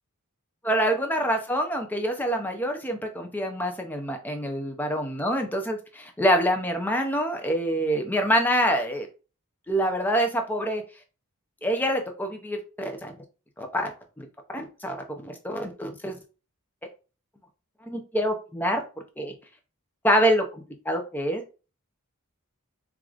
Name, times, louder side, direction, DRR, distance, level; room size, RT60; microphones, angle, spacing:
voice 1, 0.7-9.1 9.7-10.8 11.6-13.1 13.6-13.9 14.2-15.0 15.2-16.1 17.8-18.8 19.2-19.3 20.0-21.4, equal, 10° left, 0.5 m, -26 dB
4.6 x 2.5 x 2.4 m
head